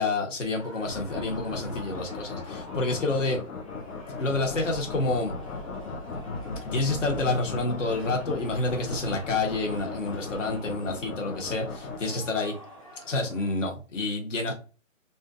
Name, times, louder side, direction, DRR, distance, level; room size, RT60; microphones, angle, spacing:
voice 1, 0.0-3.4 4.2-5.3 6.7-12.5 13.1-14.5, left 3 dB, 65° left, 2 dB, 1.3 m, -28 dB
sound 1, 0.5-13.5, equal, 25° left, 0.5 m, -47 dB
sound 2, 0.8-12.5, left 3 dB, 80° left, 0.8 m, -37 dB
3.2 x 2.6 x 2.4 m, 0.35 s
hypercardioid pair, 170°, 41 cm